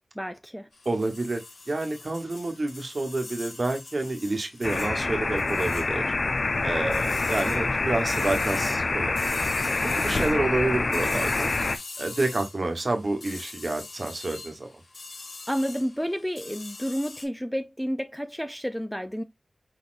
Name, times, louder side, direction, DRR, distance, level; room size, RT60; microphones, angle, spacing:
voice 1, 0.2-0.7 15.5-19.2, equal, ahead, 0.4 m, -30 dB
sound 1, 0.7-17.3, left 3 dB, 75° left, 1.2 m, -43 dB
voice 2, 0.8-6.0 6.6-9.1 9.8-11.5 12.0-14.7, right 2 dB, 45° right, 1.1 m, -29 dB
sound 2, 4.6-11.8, left 3 dB, 55° left, 0.5 m, -26 dB
4.9 x 4.1 x 2.5 m
wide cardioid pair, 95°, 0 cm